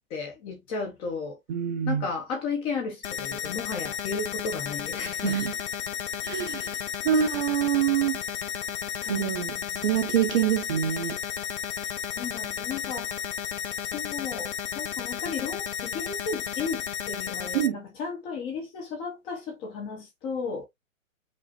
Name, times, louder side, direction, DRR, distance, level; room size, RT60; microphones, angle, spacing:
voice 1, 0.1-1.4 1.9-5.4 7.1-7.4 9.0-10.0 12.1-13.1 13.9-20.7, left 5 dB, 15° left, 0.5 m, -34 dB
voice 2, 1.5-2.0 5.2-5.5 6.2-6.8 7.0-8.2 9.1-9.5 9.8-11.2 17.5-17.8, right 11 dB, 35° right, 0.6 m, -25 dB
sound 1, 3.0-17.7, left 8 dB, 55° left, 0.8 m, -33 dB
5.1 x 3.0 x 2.7 m
hypercardioid pair, 140°, 41 cm